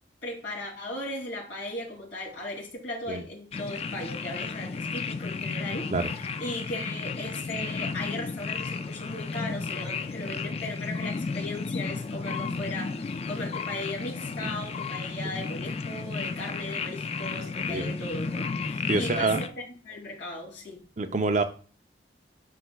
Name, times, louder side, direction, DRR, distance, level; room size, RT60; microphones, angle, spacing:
voice 1, 0.2-20.8, left 2 dB, 80° left, -2 dB, 3.0 m, -37 dB
sound 1, 3.5-19.5, left 4 dB, 35° left, 0.3 m, -33 dB
voice 2, 18.9-19.4 21.0-21.4, right 3 dB, 40° right, 7 dB, 0.5 m, -26 dB
11.0 x 4.4 x 2.3 m, 0.39 s
head